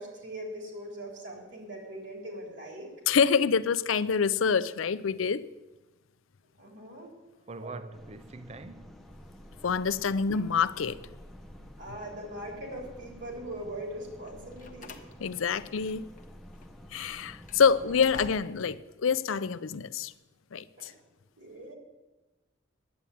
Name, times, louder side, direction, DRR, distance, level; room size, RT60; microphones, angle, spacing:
voice 1, 0.0-2.9 6.6-7.1 7.5-7.9 11.8-15.0 17.7-17.8 20.8-20.9 21.4-21.8, right 1 dB, 60° right, 3.6 m, -41 dB
voice 2, 3.1-5.5 9.6-11.0 15.2-16.1 16.9-20.1 20.5-20.9, left 6 dB, 85° left, 0.5 m, -26 dB
voice 3, 7.5-9.0, right 3 dB, 30° right, 0.5 m, -43 dB
sound 1, 7.9-18.3, equal, ahead, 0.8 m, -50 dB
Slam, 14.2-16.3 16.5-16.7 17.2-18.8, left 4 dB, 40° left, 0.9 m, -48 dB
10.5 x 8.5 x 9.2 m
head